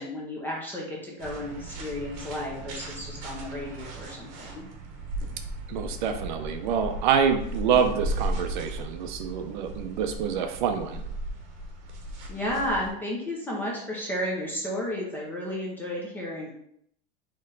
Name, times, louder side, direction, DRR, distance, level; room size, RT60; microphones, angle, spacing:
voice 1, 0.0-4.7 12.3-16.5, left 1 dB, 5° left, -3 dB, 0.5 m, -33 dB
sound 1, 1.2-12.9, right 1 dB, 40° right, 0.9 m, -36 dB
voice 2, 5.7-11.0, right 7 dB, 55° right, 6 dB, 0.6 m, -26 dB
4.3 x 3.1 x 3.9 m, 0.71 s
supercardioid pair, 175°, 29 cm